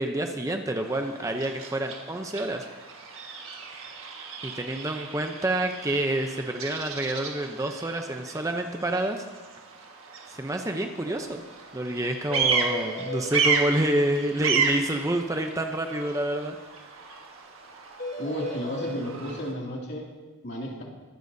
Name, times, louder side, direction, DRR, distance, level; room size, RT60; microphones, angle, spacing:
voice 1, 0.0-2.7 4.4-9.2 10.3-11.4 11.7-16.6, right 1 dB, 15° right, 4 dB, 0.6 m, -28 dB
Bird vocalization bird call bird song, 0.8-19.5, right 5 dB, 60° right, 1.6 m, -33 dB
sound 1, 11.1-11.2 11.4-11.5 11.8-11.9 12.3-13.3 18.0-19.0, left 1 dB, 35° left, 1.5 m, -35 dB
voice 2, 18.2-20.0 20.4-20.8, equal, 50° left, -2 dB, 2.5 m, -33 dB
22.0 x 11.5 x 2.7 m, 1.2 s
head